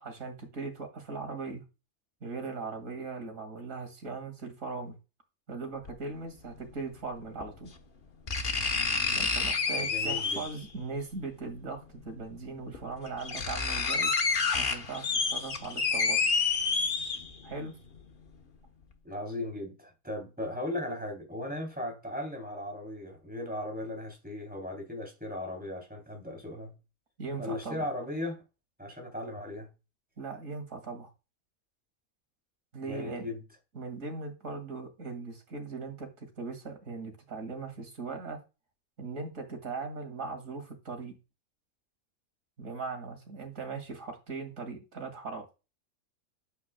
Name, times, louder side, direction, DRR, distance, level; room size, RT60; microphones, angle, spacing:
voice 1, 0.0-1.6 2.2-5.0 5.5-7.7 9.1-14.1 14.6-16.2 17.4-17.8 27.2-27.9 30.2-31.1 32.7-33.3 33.7-38.4 39.0-41.2 42.6-45.5, right 4 dB, 65° right, 2.5 m, -39 dB
sound 1, 5.9-6.0 7.4-7.5 8.3-10.7 12.0-12.1 12.7-12.8 13.1-17.5 17.9-18.0, left 4 dB, 40° left, 1.1 m, -29 dB
voice 2, 9.8-10.5 19.0-26.8 27.4-28.4 28.8-29.7 32.8-33.4, left 1 dB, 5° right, 3.1 m, -37 dB
8.5 x 8.3 x 2.2 m
omnidirectional pair, 1.5 m